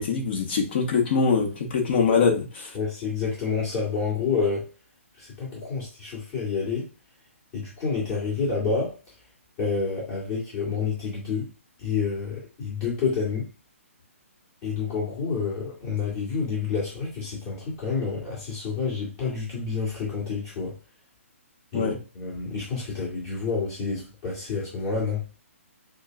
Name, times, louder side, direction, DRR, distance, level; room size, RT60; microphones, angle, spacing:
voice 1, 0.0-2.8 21.7-22.0, left 5 dB, 45° left, 1.3 m, -23 dB
voice 2, 2.7-4.7 5.2-6.9 7.5-8.9 9.6-11.5 11.8-13.5 14.6-20.8 21.7-25.2, left 5 dB, 30° left, 2.4 m, -28 dB
6.8 x 2.3 x 2.5 m
figure-of-eight pair, 140°, 8 cm